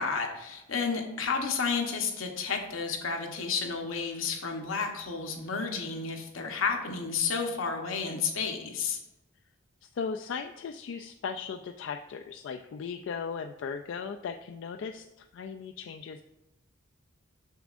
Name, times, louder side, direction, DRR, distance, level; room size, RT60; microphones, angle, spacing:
voice 1, 0.0-9.0, left 5 dB, 85° left, 3 dB, 1.0 m, -31 dB
voice 2, 9.8-16.2, left 6 dB, 65° left, 5 dB, 0.3 m, -37 dB
6.8 x 6.1 x 2.5 m, 0.96 s
head